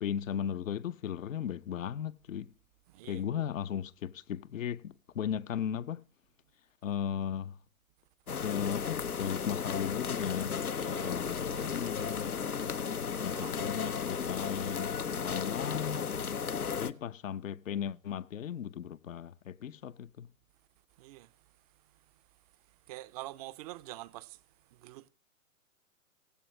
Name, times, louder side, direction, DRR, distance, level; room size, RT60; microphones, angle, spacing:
voice 1, 0.0-2.5 3.1-6.0 6.8-7.6 8.4-12.4 13.2-16.1 16.8-20.3, left 8 dB, 65° left, 0.9 m, -36 dB
voice 2, 2.9-3.4 10.9-12.1 13.3-14.3 21.0-21.3 22.9-24.4 24.8-25.1, right 17 dB, 30° right, 0.6 m, -47 dB
sound 1, 8.3-16.9, left 6 dB, 85° left, 1.1 m, -34 dB
17.0 x 15.5 x 3.2 m
figure-of-eight pair, 120°, 43 cm